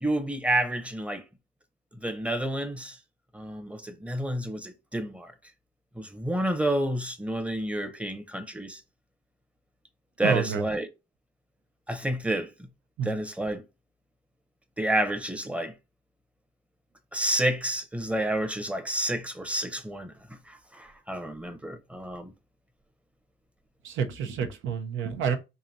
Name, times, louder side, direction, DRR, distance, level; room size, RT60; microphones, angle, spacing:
voice 1, 0.0-1.2 2.0-3.0 3.3-5.3 6.0-8.8 10.2-10.9 11.9-12.5 13.0-13.6 14.8-15.7 17.1-20.1 20.5-22.3, right 1 dB, 5° right, 0.7 m, -29 dB
voice 2, 10.2-10.7 13.0-13.2 23.8-25.4, right 7 dB, 80° right, 0.7 m, -29 dB
4.8 x 2.7 x 2.7 m
cardioid pair, 90°, 20 cm